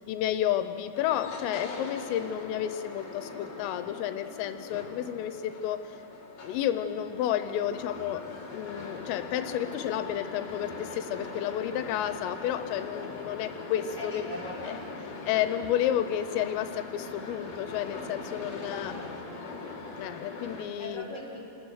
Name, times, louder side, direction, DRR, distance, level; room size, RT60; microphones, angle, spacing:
voice 1, 0.1-6.0 6.4-8.2 8.5-14.2 14.7-14.8 15.3-18.9 20.0-21.1, left 11 dB, 85° left, 9 dB, 3.4 m, -31 dB
sound 1, 0.9-20.6, left 3 dB, 40° left, 3.0 m, -41 dB
voice 2, 14.0-14.7 18.6-19.1 20.8-21.4, left 1 dB, 5° left, -5 dB, 4.4 m, -40 dB
28.0 x 20.0 x 6.4 m, 2.5 s
omnidirectional pair, 5.8 m